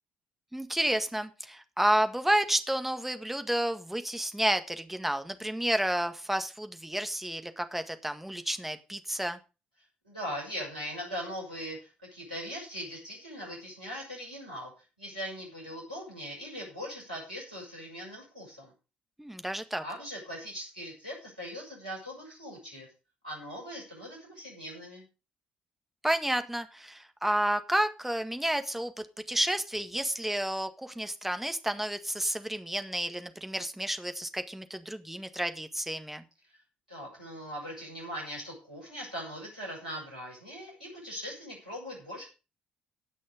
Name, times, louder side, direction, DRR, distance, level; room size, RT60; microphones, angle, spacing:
voice 1, 0.5-9.4 19.2-19.8 26.0-28.9 29.3-36.2, right 1 dB, 5° right, 8 dB, 1.7 m, -30 dB
voice 2, 10.0-14.7 15.0-18.7 19.8-22.9 23.2-25.0 36.9-42.2, equal, 90° right, -4 dB, 6.7 m, -40 dB
18.0 x 6.3 x 5.1 m, 0.32 s
figure-of-eight pair, 45°, 4 cm